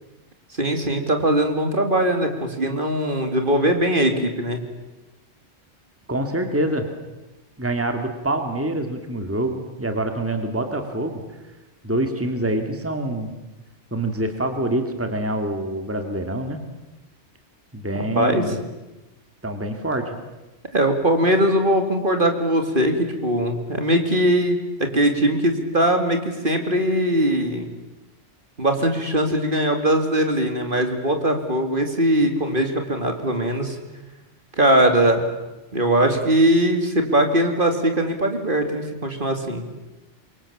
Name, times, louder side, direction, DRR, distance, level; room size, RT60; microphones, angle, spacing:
voice 1, 0.6-4.6 17.9-18.4 20.7-27.7 28.6-33.8 34.6-35.3 35.7-39.6, right 1 dB, 45° right, 5 dB, 2.8 m, -21 dB
voice 2, 6.1-6.9 7.6-11.2 11.8-13.3 13.9-16.6 17.7-18.6 19.4-20.2, right 1 dB, 10° right, 6 dB, 2.2 m, -25 dB
27.0 x 23.5 x 7.3 m, 1.0 s
omnidirectional pair, 1.2 m